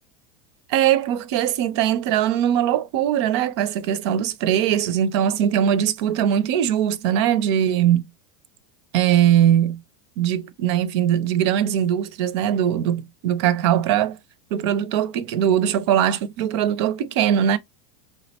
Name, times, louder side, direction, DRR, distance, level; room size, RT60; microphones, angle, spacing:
voice 1, 0.7-8.0 8.9-9.8 10.2-14.2 14.5-17.6, right 10 dB, 65° right, 0.5 m, -21 dB
3.6 x 2.1 x 2.7 m
supercardioid pair, 130°, 16 cm